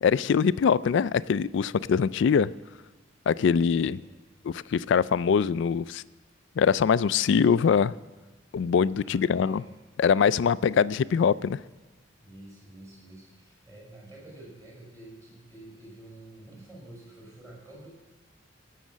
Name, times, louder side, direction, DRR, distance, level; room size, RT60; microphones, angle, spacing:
voice 1, 0.0-2.5 3.3-4.0 4.4-6.0 6.6-7.9 8.5-9.6 10.0-11.6, left 6 dB, 65° left, 18 dB, 0.3 m, -23 dB
voice 2, 3.8-4.2 9.0-9.7 10.3-10.8 12.2-17.9, right 1 dB, 15° right, -3 dB, 5.7 m, -49 dB
16.5 x 6.5 x 7.3 m, 1.2 s
head